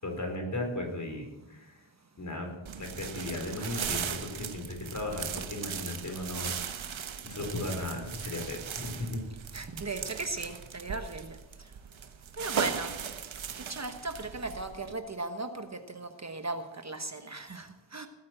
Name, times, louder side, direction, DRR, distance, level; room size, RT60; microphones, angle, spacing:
voice 1, 0.0-1.7 2.2-2.5 2.8-7.0 7.2-9.2, left 2 dB, 40° left, 2 dB, 4.7 m, -36 dB
sound 1, 2.7-14.9, right 7 dB, 90° right, 1.2 m, -38 dB
voice 2, 9.5-11.4 12.4-12.9 13.7-18.1, right 3 dB, 35° right, 7 dB, 1.2 m, -37 dB
18.0 x 9.5 x 7.8 m, 1.0 s
wide cardioid pair, 130°, 46 cm